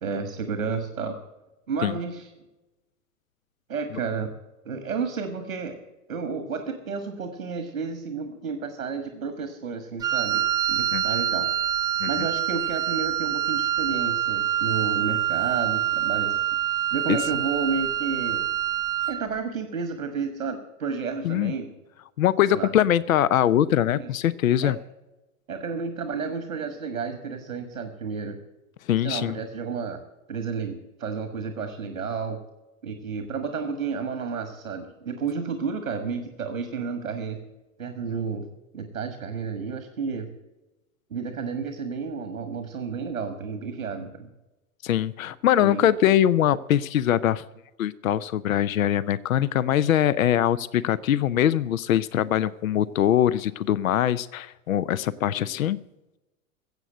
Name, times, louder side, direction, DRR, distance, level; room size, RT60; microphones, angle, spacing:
voice 1, 0.0-1.1 1.7-2.3 3.7-4.3 4.6-5.8 6.1-10.4 10.7-11.5 12.1-16.4 16.9-18.4 19.1-21.7 22.5-22.7 23.9-24.1 24.6-24.7 25.5-28.4 29.0-30.0 30.3-32.4 32.8-37.4 37.8-38.4 38.7-40.3 41.1-44.3 45.5-45.8, right 5 dB, 80° right, 8 dB, 1.5 m, -31 dB
Wind instrument woodwind instrument, 10.0-19.3, right 12 dB, 10° right, 0.4 m, -26 dB
voice 2, 22.2-24.8 28.9-29.4 44.8-47.4 47.8-55.8, left 11 dB, 75° left, 19 dB, 0.6 m, -22 dB
15.0 x 8.0 x 7.7 m, 1.0 s
figure-of-eight pair, 90°, 41 cm